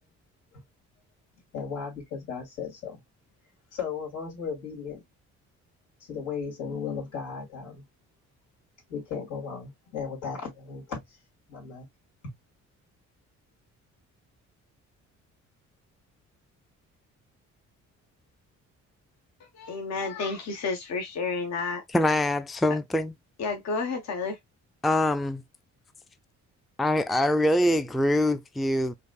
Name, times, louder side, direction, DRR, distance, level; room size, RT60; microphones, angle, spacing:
voice 1, 1.5-3.0 3.7-5.0 6.1-7.8 8.9-11.0 11.5-11.9, left 6 dB, 90° left, 2.4 m, -35 dB
voice 2, 19.6-21.8 23.4-24.4, left 4 dB, 60° left, 0.9 m, -31 dB
voice 3, 21.9-23.1 24.8-25.4 26.8-28.9, left 1 dB, ahead, 0.3 m, -24 dB
4.7 x 2.6 x 2.2 m
cardioid pair, 90°, 30 cm